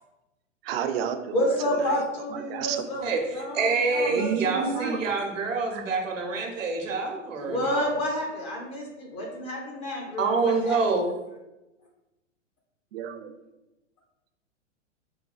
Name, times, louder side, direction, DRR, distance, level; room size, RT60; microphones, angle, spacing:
voice 1, 0.6-1.4 1.8-1.9 2.3-2.8 3.9-5.1 5.7-5.8 12.9-13.3, right 8 dB, 55° right, 8 dB, 0.4 m, -31 dB
voice 2, 1.3-3.0 3.3-5.0 7.4-10.8, equal, 15° left, -1 dB, 0.3 m, -30 dB
voice 3, 3.0-7.9 10.2-11.1, right 4 dB, 80° right, 2 dB, 0.8 m, -27 dB
5.1 x 2.3 x 2.4 m, 0.99 s
hypercardioid pair, 105°, 38 cm